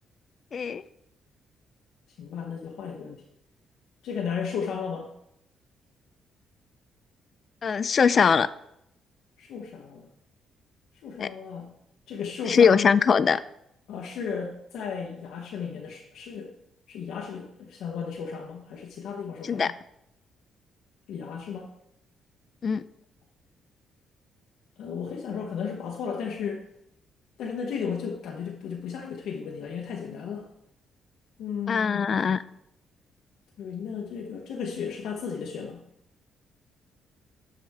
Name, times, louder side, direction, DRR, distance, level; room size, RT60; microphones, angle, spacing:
voice 1, 0.5-0.8 7.6-8.5 11.2-11.3 12.5-13.4 19.5-19.7 22.6-22.8 31.7-32.4, left 6 dB, 45° left, 16 dB, 0.3 m, -21 dB
voice 2, 2.2-3.2 4.0-5.1 9.4-10.1 10.9-11.7 12.1-12.9 13.9-16.5 16.9-19.7 21.1-21.7 24.8-26.6 27.4-30.5 31.4-32.0 33.6-35.8, left 6 dB, 80° left, -1 dB, 1.0 m, -34 dB
12.0 x 5.0 x 3.5 m, 0.78 s
cardioid pair, 90°, 0 cm